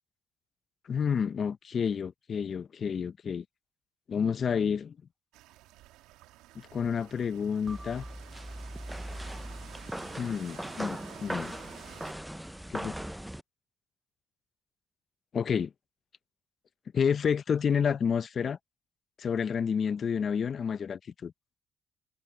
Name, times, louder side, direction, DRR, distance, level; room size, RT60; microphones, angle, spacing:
voice 1, 0.9-3.4 4.1-5.0 6.5-8.0 10.2-11.5 12.7-12.9 15.3-15.7 16.9-18.6 19.2-21.3, left 7 dB, 50° left, 0.6 m, -29 dB
sound 1, 5.3-12.1, right 16 dB, 90° right, 2.3 m, -52 dB
sound 2, 7.7-13.4, right 1 dB, 5° right, 0.6 m, -39 dB
supercardioid pair, 80°, 0 cm